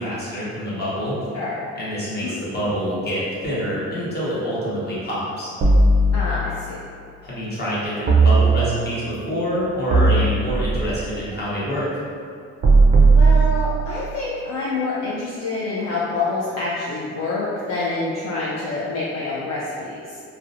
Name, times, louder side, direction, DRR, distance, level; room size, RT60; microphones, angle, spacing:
voice 1, 0.0-1.2 1.8-5.5 7.2-11.9, equal, 35° left, -9 dB, 1.0 m, -26 dB
sound 1, 5.6-6.7 8.1-9.0 9.9-11.0 12.6-14.0, right 3 dB, 30° right, 0.4 m, -16 dB
voice 2, 6.1-6.8 13.1-20.2, left 3 dB, 60° left, -6 dB, 0.4 m, -27 dB
2.4 x 2.0 x 2.7 m, 2.4 s
cardioid pair, 90°, 30 cm